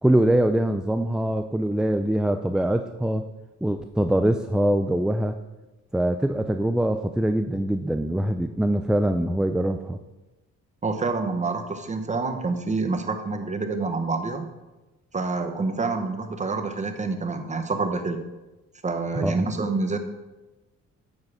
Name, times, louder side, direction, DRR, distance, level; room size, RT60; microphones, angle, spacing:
voice 1, 0.0-3.2 3.6-5.3 5.9-10.0 19.1-19.4, right 1 dB, 5° right, 7 dB, 0.3 m, -23 dB
voice 2, 10.8-14.5 15.1-18.3 18.8-20.0, right 3 dB, 25° right, 6 dB, 1.1 m, -27 dB
9.4 x 7.5 x 4.9 m, 1.1 s
cardioid pair, 120°, 30 cm